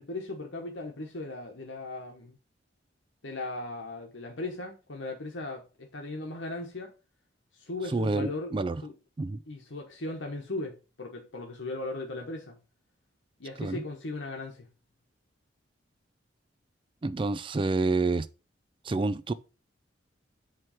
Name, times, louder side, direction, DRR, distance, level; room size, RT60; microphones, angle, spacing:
voice 1, 0.0-2.4 3.2-6.9 7.5-8.5 8.8-8.9 9.5-12.6 13.4-14.7, left 2 dB, 75° left, 1.2 m, -37 dB
voice 2, 7.9-8.8 9.2-9.4 13.6-13.8 17.0-18.3 18.8-19.3, right 3 dB, 25° right, 0.3 m, -28 dB
7.6 x 3.2 x 5.7 m
head